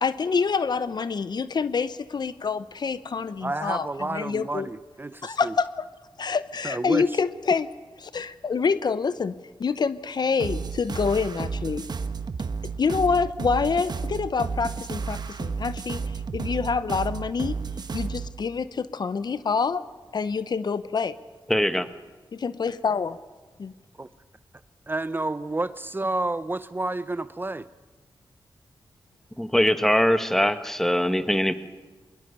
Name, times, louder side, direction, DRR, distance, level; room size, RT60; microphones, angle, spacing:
voice 1, 0.0-4.7 5.2-5.9 6.2-7.7 8.0-9.3 9.6-11.9 12.8-16.0 16.3-17.5 17.9-19.8 20.1-21.1 22.3-23.2 23.6-23.7, left 5 dB, 60° left, 14 dB, 0.8 m, -26 dB
voice 2, 3.4-5.5 6.6-7.1 24.9-27.7, right 2 dB, 25° right, 14 dB, 0.6 m, -30 dB
sound 1, 10.4-18.3, right 5 dB, 55° right, 1.2 m, -32 dB
voice 3, 21.5-21.9 29.4-31.5, equal, 5° left, 10 dB, 1.3 m, -22 dB
21.5 x 21.5 x 6.9 m, 1.3 s
cardioid pair, 75°, 8 cm